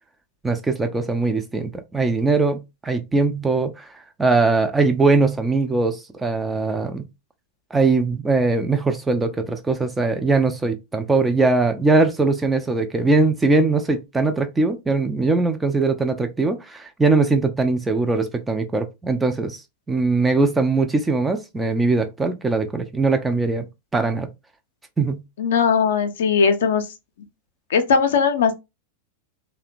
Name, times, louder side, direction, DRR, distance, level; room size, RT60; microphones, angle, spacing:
voice 1, 0.4-3.9 4.2-7.1 7.7-19.6 19.9-23.7 23.9-24.3 25.0-25.2, right 3 dB, 10° right, 0.4 m, -21 dB
voice 2, 25.4-26.8 27.7-28.5, left 6 dB, 60° left, 0.5 m, -19 dB
2.7 x 2.1 x 2.5 m
figure-of-eight pair, 90°, 0 cm